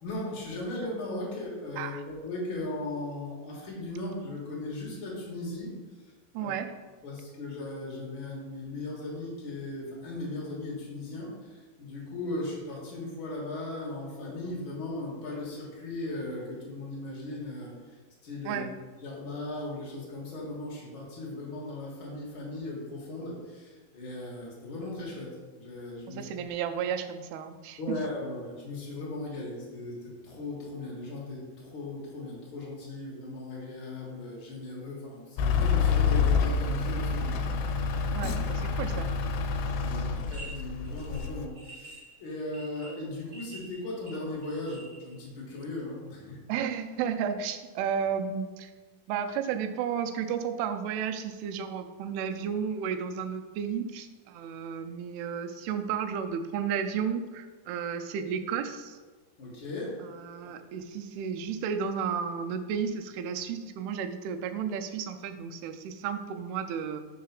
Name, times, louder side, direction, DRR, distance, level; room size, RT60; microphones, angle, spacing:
voice 1, 0.0-5.7 6.4-6.5 7.0-18.0 18.2-18.6 19.0-26.2 27.8-37.4 39.8-46.4 59.4-60.0 60.4-60.5, left 2 dB, 60° left, -3 dB, 1.3 m, -37 dB
voice 2, 6.3-6.7 18.5-18.7 26.1-28.0 38.1-39.1 46.5-48.7 49.1-59.0 60.0-67.0, right 7 dB, 85° right, 7 dB, 2.6 m, -33 dB
Truck / Idling, 35.4-41.5, left 5 dB, 85° left, 2.4 m, -27 dB
sound 1, 40.3-40.5 40.8-45.1, right 2 dB, 45° right, 0.9 m, -47 dB
4.8 x 4.7 x 5.8 m, 1.3 s
omnidirectional pair, 4.5 m